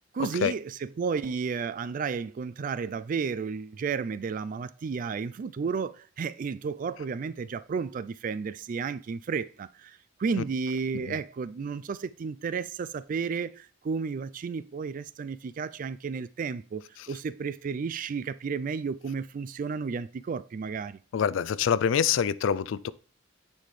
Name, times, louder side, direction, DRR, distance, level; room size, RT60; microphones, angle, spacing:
voice 1, 0.1-16.8 17.1-21.0, right 5 dB, 45° right, 0.3 m, -32 dB
voice 2, 21.1-22.9, left 7 dB, 85° left, 0.4 m, -25 dB
9.5 x 4.2 x 3.2 m
head